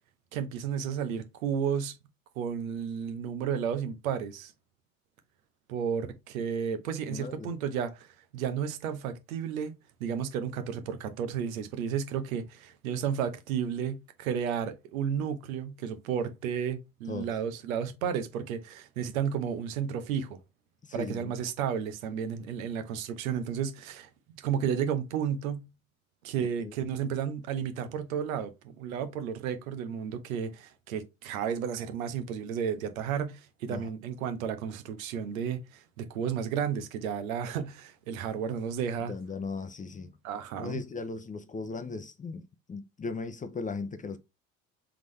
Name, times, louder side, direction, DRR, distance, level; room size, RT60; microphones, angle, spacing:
voice 1, 0.3-2.0 2.4-4.5 5.7-8.1 8.3-9.7 10.0-20.4 20.9-24.1 24.4-25.7 26.2-39.1 40.2-40.8, right 8 dB, 80° right, 0.8 m, -32 dB
voice 2, 7.1-7.5 17.1-17.3 20.8-21.4 26.4-26.7 33.7-33.9 39.1-40.1 40.6-42.4 42.7-44.2, left 4 dB, 20° left, 0.6 m, -37 dB
3.9 x 3.6 x 3.2 m
hypercardioid pair, 65°, 41 cm